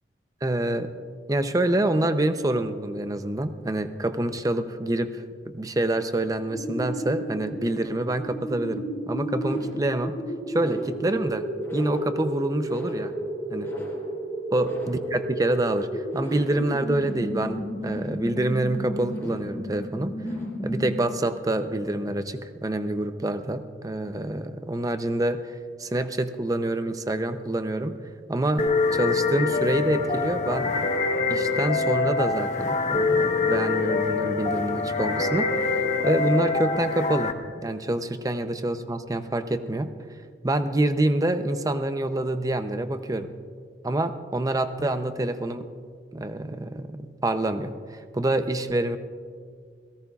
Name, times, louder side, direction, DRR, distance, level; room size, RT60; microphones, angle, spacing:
voice 1, 0.4-0.9 1.3-5.2 5.5-10.2 10.5-13.1 13.5-13.7 14.5-20.2 20.6-25.4 25.8-28.0 28.3-30.8 31.3-35.8 36.0-37.3 37.6-39.9 40.4-43.3 43.8-45.7 46.1-49.0, right 1 dB, 20° right, 9 dB, 0.6 m, -26 dB
sound 1, 6.4-21.3, equal, 15° left, 4.6 m, -33 dB
sound 2, 28.6-37.3, left 4 dB, 45° left, 1.0 m, -25 dB
29.5 x 17.5 x 2.4 m, 2.1 s
head